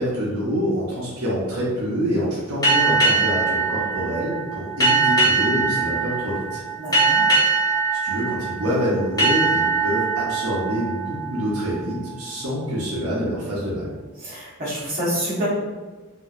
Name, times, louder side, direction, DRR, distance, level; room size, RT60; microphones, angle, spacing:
voice 1, 0.0-6.6 8.0-13.9, equal, 80° right, -7 dB, 0.7 m, -26 dB
sound 1, 2.6-11.9, right 3 dB, 15° left, 0.6 m, -22 dB
voice 2, 6.8-7.2 14.2-15.5, equal, 40° right, -9 dB, 1.1 m, -27 dB
2.8 x 2.5 x 2.4 m, 1.3 s
head